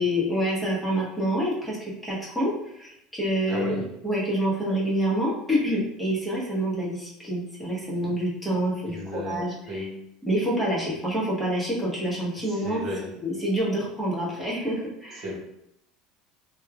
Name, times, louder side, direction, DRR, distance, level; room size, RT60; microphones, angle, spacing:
voice 1, 0.0-1.8 2.0-9.9 10.3-12.8 13.2-15.3, equal, 5° left, -6 dB, 1.1 m, -27 dB
voice 2, 3.5-3.9 8.9-10.0 12.3-13.2 15.1-15.4, left 1 dB, 50° right, -2 dB, 0.9 m, -34 dB
3.0 x 2.3 x 2.3 m, 0.78 s
supercardioid pair, 95°, 0 cm